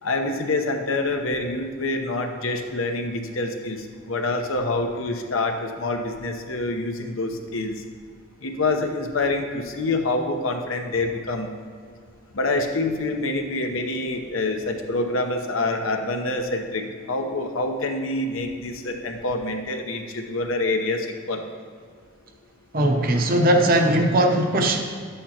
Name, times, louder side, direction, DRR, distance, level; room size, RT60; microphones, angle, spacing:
voice 1, 0.0-7.7 8.4-11.5 12.3-21.4, left 2 dB, 75° left, 4 dB, 0.9 m, -26 dB
voice 2, 22.7-24.8, right 1 dB, 45° right, 4 dB, 0.8 m, -19 dB
11.0 x 8.4 x 2.9 m, 2.1 s
head